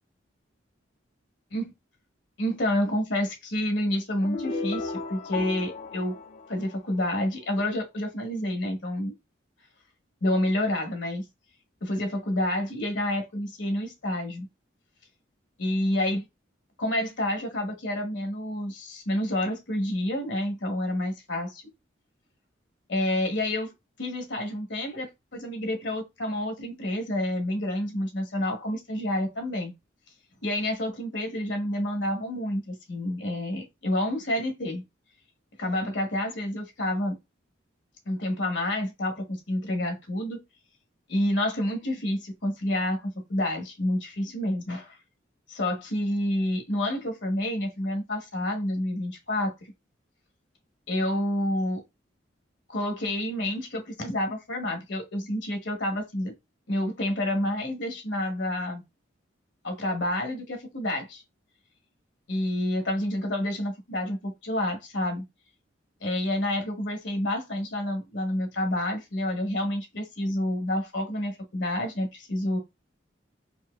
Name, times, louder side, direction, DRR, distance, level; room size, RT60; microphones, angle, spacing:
voice 1, 2.4-6.2 6.5-9.1 10.2-11.2 11.8-14.5 15.6-16.2 16.8-21.6 22.9-23.7 24.0-29.7 30.4-34.8 35.6-37.2 38.1-40.4 41.1-45.0 45.5-49.5 50.9-51.8 52.7-56.3 56.7-58.8 59.6-61.2 62.3-65.2 66.0-72.6, left 1 dB, 70° left, 1.0 m, -29 dB
sound 1, 4.2-7.3, left 3 dB, 35° left, 0.3 m, -35 dB
4.2 x 2.5 x 2.3 m
head